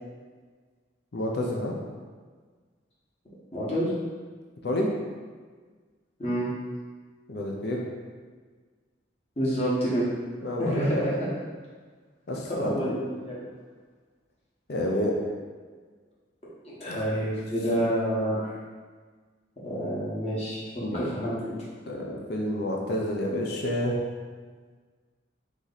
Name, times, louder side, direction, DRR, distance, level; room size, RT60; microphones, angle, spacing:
voice 1, 1.1-1.8 4.6-4.9 7.3-7.8 10.4-11.1 12.3-13.0 14.7-15.1 16.9-17.0 20.8-21.2 21.9-24.0, left 1 dB, 55° left, -1 dB, 0.6 m, -29 dB
voice 2, 3.5-3.9 6.2-6.5 9.4-10.1 10.6-11.3 12.5-13.5 16.6-18.5 19.6-20.6 20.9-21.5, equal, 30° left, -8 dB, 1.2 m, -28 dB
4.1 x 3.2 x 3.9 m, 1.5 s
head